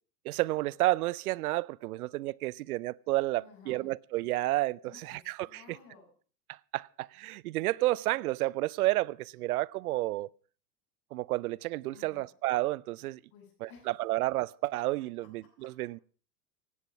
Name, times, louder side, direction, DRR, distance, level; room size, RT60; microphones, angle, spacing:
voice 1, 0.2-5.6 6.5-10.3 11.1-13.2 13.6-16.0, right 18 dB, 65° right, 0.6 m, -31 dB
voice 2, 3.4-3.9 4.8-6.1 11.9-12.3 13.3-13.9 15.2-15.9, left 6 dB, 55° left, 7.8 m, -56 dB
16.0 x 10.5 x 5.9 m
hypercardioid pair, 90°, 48 cm